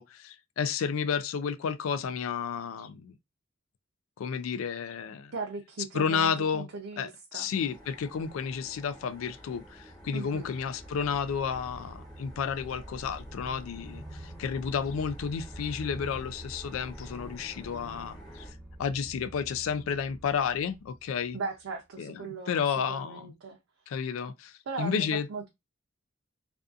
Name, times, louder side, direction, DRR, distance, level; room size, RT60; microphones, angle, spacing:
voice 1, 0.0-3.1 4.2-5.3 5.9-6.7 7.0-18.5 18.8-21.4 22.0-23.3 23.9-25.3, left 6 dB, 75° left, 0.3 m, -31 dB
voice 2, 5.3-7.5 10.1-10.5 21.3-23.6 24.7-25.5, right 4 dB, 75° right, 0.5 m, -38 dB
sound 1, 7.5-18.5, equal, 20° left, 1.0 m, -52 dB
sound 2, 9.2-21.6, right 1 dB, ahead, 0.7 m, -47 dB
2.5 x 2.3 x 2.4 m
head